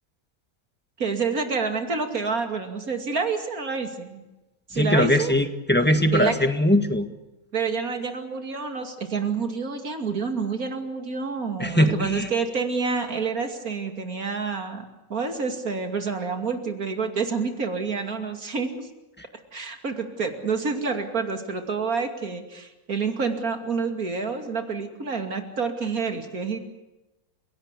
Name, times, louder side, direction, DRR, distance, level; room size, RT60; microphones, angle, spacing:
voice 1, 1.0-4.2 4.7-5.3 6.1-6.3 7.5-14.8 15.1-18.9 19.5-26.6, right 5 dB, 75° right, 5 dB, 3.0 m, -28 dB
voice 2, 4.7-7.1 11.6-12.3 19.2-19.3, left 1 dB, 5° left, 8 dB, 1.7 m, -21 dB
29.5 x 17.5 x 8.3 m, 1.0 s
omnidirectional pair, 1.5 m